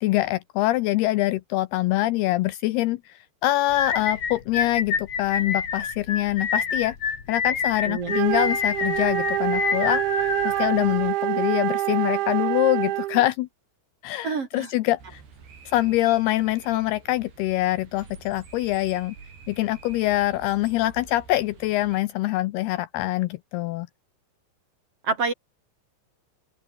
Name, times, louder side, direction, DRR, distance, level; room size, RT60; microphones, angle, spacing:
voice 1, 0.0-7.0 7.3-10.0 10.4-13.5 14.0-15.2 15.7-19.2 19.5-23.9, left 16 dB, 90° left, 2.4 m, -24 dB
sound 1, 3.7-11.1, left 6 dB, 40° left, 3.8 m, -27 dB
Wind instrument woodwind instrument, 8.0-13.3, right 17 dB, 85° right, 3.4 m, -26 dB
voice 2, 14.2-14.7 25.0-25.3, right 4 dB, 40° right, 2.6 m, -27 dB
sound 2, 15.0-22.0, right 6 dB, 65° right, 7.5 m, -47 dB
open air
omnidirectional pair, 5.2 m